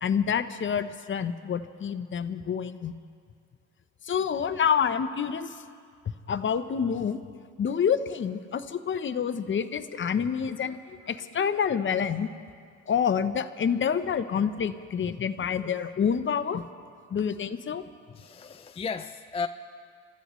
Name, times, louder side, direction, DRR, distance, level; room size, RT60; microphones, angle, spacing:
voice 1, 0.0-2.9 4.1-5.6 6.3-7.2 7.6-12.3 12.9-16.6 17.1-17.8, left 7 dB, 40° left, 11 dB, 0.7 m, -27 dB
voice 2, 18.1-19.5, left 5 dB, 20° left, 7 dB, 0.4 m, -34 dB
29.0 x 14.0 x 3.1 m, 2.2 s
cardioid pair, 90°, 30 cm